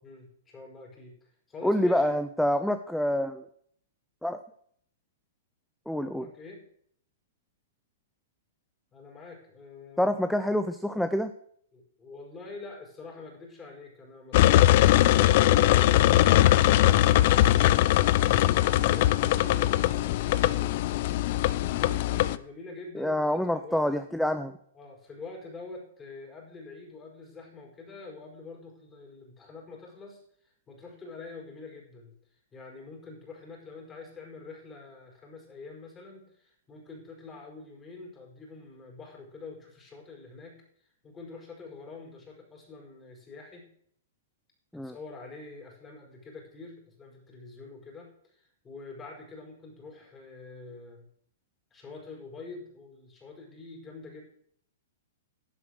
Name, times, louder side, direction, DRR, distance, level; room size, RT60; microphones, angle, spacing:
voice 1, 0.0-2.1 6.0-6.6 8.9-10.5 11.7-20.8 21.6-23.9 24.7-32.1 32.5-43.7 44.8-51.1 51.7-54.2, left 3 dB, 20° left, 0 dB, 5.2 m, -46 dB
voice 2, 1.6-3.5 4.2-4.4 5.9-6.3 10.0-11.3 22.9-24.6 44.7-44.9, left 1 dB, ahead, 10 dB, 0.6 m, -27 dB
sound 1, 14.3-22.4, left 14 dB, 50° left, 0.5 m, -21 dB
11.5 x 8.0 x 6.6 m, 0.65 s
hypercardioid pair, 130°, 0 cm